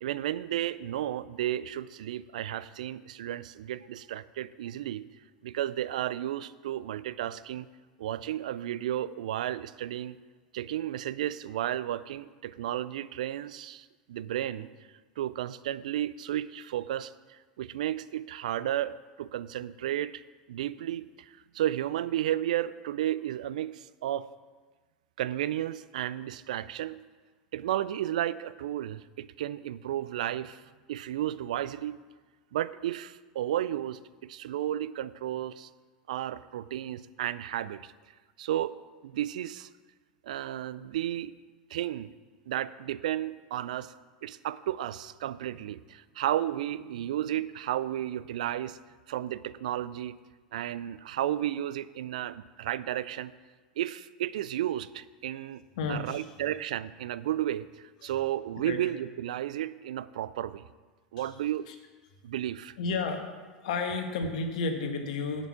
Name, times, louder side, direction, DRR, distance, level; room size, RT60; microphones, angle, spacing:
voice 1, 0.0-5.0 5.4-7.7 8.0-10.2 10.5-14.7 15.2-20.2 20.5-24.3 25.2-27.0 27.5-32.0 32.5-35.7 36.1-37.9 38.4-38.7 39.0-39.7 40.2-41.3 41.7-42.1 42.5-43.9 44.2-48.8 49.1-50.2 50.5-53.3 53.8-55.6 55.9-60.6 61.1-61.6 62.2-62.8, right 12 dB, 70° right, 16 dB, 0.4 m, -33 dB
voice 2, 55.8-56.3 58.0-58.1 58.6-58.8 61.2-61.3 61.7-61.8 62.8-63.3 63.6-65.5, left 4 dB, 65° left, 5 dB, 1.4 m, -32 dB
8.2 x 7.4 x 7.1 m, 1.4 s
figure-of-eight pair, 80°, 4 cm